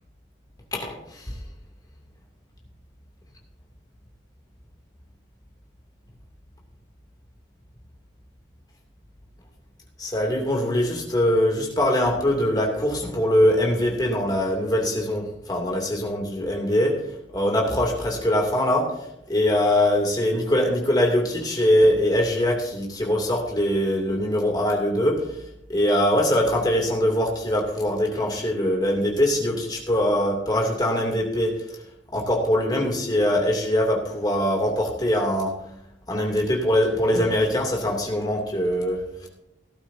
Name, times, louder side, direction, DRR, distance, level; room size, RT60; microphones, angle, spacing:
voice 1, 0.7-1.3 10.0-16.9 17.3-18.8 19.3-25.3 25.7-31.5 32.1-35.5 36.1-39.3, left 1 dB, 20° left, 0 dB, 2.7 m, -22 dB
17.5 x 11.5 x 2.8 m, 0.82 s
head